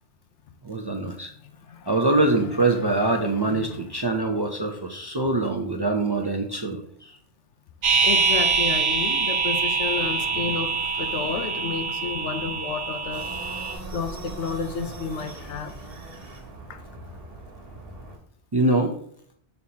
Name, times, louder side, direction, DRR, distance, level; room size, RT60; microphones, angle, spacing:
voice 1, 0.6-1.3 1.9-6.8 18.5-18.9, right 2 dB, 30° right, 0.4 m, -24 dB
voice 2, 1.4-1.9 2.3-3.9 4.1-4.2 8.0-13.3 13.9-15.7 16.7-16.8, left 5 dB, 85° left, 1.0 m, -32 dB
sound 1, 7.8-13.7, right 5 dB, 90° right, 1.3 m, -24 dB
sound 2, 13.1-18.2, right 2 dB, 55° right, 1.4 m, -40 dB
6.5 x 5.6 x 2.8 m
omnidirectional pair, 1.2 m